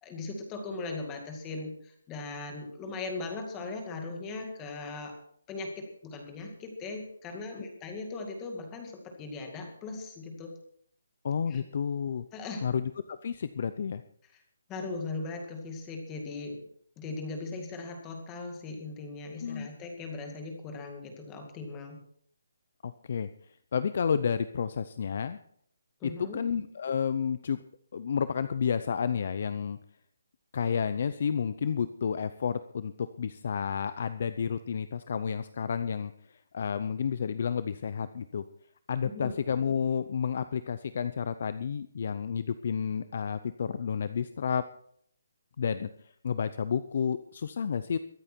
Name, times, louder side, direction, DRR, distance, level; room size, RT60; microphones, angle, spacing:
voice 1, 0.0-5.2 5.5-10.6 11.5-11.6 12.3-12.7 14.3-14.4 14.7-16.6 17.0-22.0 26.0-26.4 39.0-39.3, left 3 dB, 10° left, 3 dB, 2.1 m, -39 dB
voice 2, 11.2-12.2 12.6-14.0 19.4-19.7 22.8-23.3 23.7-25.4 26.0-27.6 27.9-29.8 30.5-38.4 38.9-44.6 45.6-45.9 46.2-48.0, left 7 dB, 35° left, 13 dB, 0.6 m, -31 dB
23.0 x 8.8 x 4.5 m, 0.63 s
hypercardioid pair, 180°, 0 cm